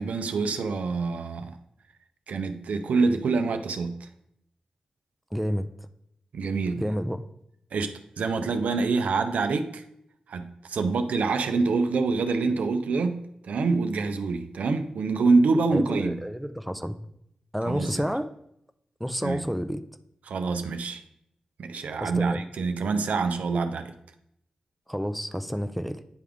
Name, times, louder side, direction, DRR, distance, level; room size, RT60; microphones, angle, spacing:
voice 1, 0.0-1.6 2.3-4.1 6.3-6.8 7.7-9.8 10.3-16.2 17.6-18.0 19.2-19.4 20.3-21.0 21.6-23.9, right 4 dB, 85° right, 0.5 m, -26 dB
voice 2, 5.3-5.9 6.8-7.2 15.7-17.0 17.5-18.3 19.0-19.8 22.0-22.4 24.9-26.0, equal, ahead, 0.4 m, -30 dB
9.6 x 3.5 x 3.5 m
cardioid pair, 70°, 2 cm